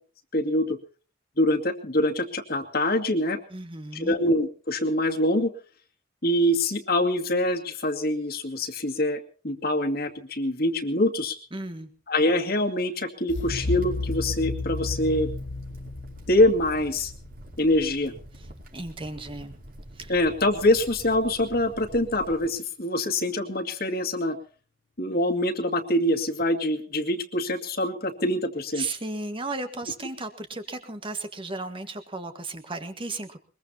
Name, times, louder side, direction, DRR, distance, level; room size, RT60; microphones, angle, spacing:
voice 1, 0.3-0.8 1.4-3.4 3.9-5.5 6.2-11.4 12.1-15.3 16.3-17.1 17.6-18.1 20.1-24.4 25.0-28.9, left 1 dB, 50° left, 4 dB, 2.3 m, -24 dB
voice 2, 3.5-4.2 11.5-11.9 18.3-19.6 19.9-20.1 28.7-33.4, right 2 dB, 25° right, 8 dB, 1.6 m, -35 dB
sound 1, 13.3-18.2, left 2 dB, 75° left, 0.9 m, -33 dB
Crackle, 13.4-22.5, equal, 50° right, 4.8 m, -46 dB
22.5 x 22.0 x 2.9 m, 0.40 s
head